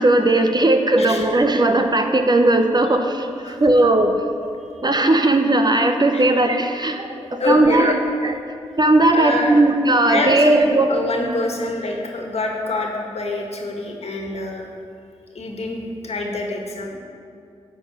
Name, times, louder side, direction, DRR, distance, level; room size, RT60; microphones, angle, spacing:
voice 1, 0.0-3.3 3.6-4.2 4.8-7.9 8.2-8.3 8.8-10.9, right 2 dB, 35° right, 5 dB, 1.0 m, -17 dB
voice 2, 7.2-7.9 9.1-9.6 10.0-14.6 15.3-17.0, left 2 dB, 60° left, 1 dB, 1.9 m, -25 dB
11.5 x 4.2 x 8.0 m, 2.3 s
cardioid pair, 45°, 12 cm